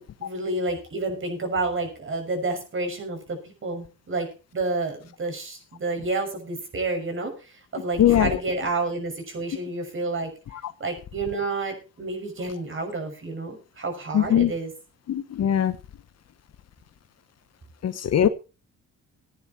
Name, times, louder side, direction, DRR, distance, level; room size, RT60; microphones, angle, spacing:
voice 1, 0.0-4.3 4.5-10.3 10.8-14.7, right 3 dB, 40° right, 6.2 m, -30 dB
voice 2, 8.0-8.4 14.1-14.5 15.1-15.8 17.8-18.3, left 10 dB, 55° left, 1.1 m, -20 dB
16.5 x 9.5 x 4.4 m
cardioid pair, 90°, 30 cm